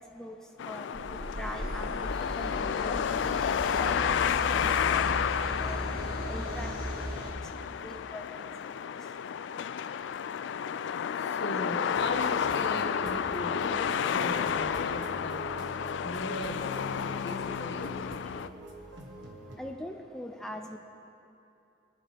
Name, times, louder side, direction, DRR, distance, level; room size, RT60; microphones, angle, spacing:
sound 1, 0.6-18.5, left 8 dB, 85° left, 0.3 m, -31 dB
voice 1, 0.7-1.1 1.4-2.1 2.4-2.5 2.8-3.1 3.8-5.8 6.3-6.7 7.0-8.7 19.6-20.8, left 1 dB, 5° left, 2 dB, 0.5 m, -42 dB
sound 2, 0.9-7.3, equal, 50° right, 2.0 m, -37 dB
voice 2, 11.4-15.4 16.0-16.5 17.0-17.9, left 1 dB, 70° left, 3 dB, 1.2 m, -38 dB
sound 3, 11.9-19.6, right 1 dB, 85° right, 1.4 m, -45 dB
20.5 x 10.0 x 3.5 m, 2.8 s
head